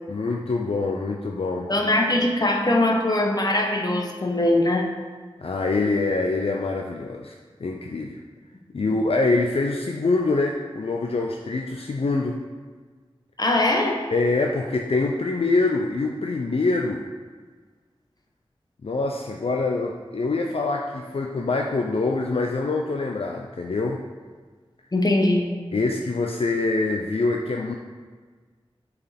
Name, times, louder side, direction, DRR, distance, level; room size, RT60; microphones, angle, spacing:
voice 1, 0.1-1.7 5.4-7.3 7.6-8.2 8.7-12.4 14.1-17.1 18.8-24.0 25.7-27.7, left 3 dB, 70° left, 1 dB, 0.4 m, -25 dB
voice 2, 1.7-4.9 8.9-9.0 13.4-14.0 24.9-25.5, left 1 dB, 40° left, 1 dB, 0.9 m, -21 dB
6.7 x 4.7 x 3.4 m, 1.5 s
wide cardioid pair, 45°, 10 cm